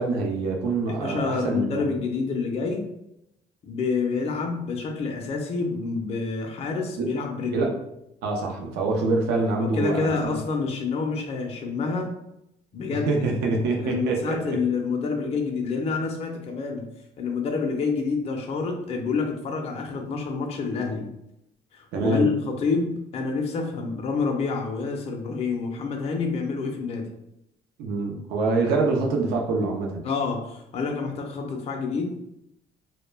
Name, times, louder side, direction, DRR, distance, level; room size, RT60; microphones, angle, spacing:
voice 1, 0.0-1.9 7.0-7.1 7.5-7.7 8.2-10.4 12.9-14.6 21.9-22.3 27.8-30.0, right 3 dB, 80° right, 1 dB, 0.5 m, -25 dB
voice 2, 0.9-2.9 3.6-7.7 9.6-12.1 12.7-13.4 13.8-16.9 17.2-21.1 21.7-27.1 30.0-32.2, left 4 dB, 35° left, 1 dB, 0.4 m, -28 dB
2.1 x 2.1 x 3.1 m, 0.82 s
cardioid pair, 110°, 17 cm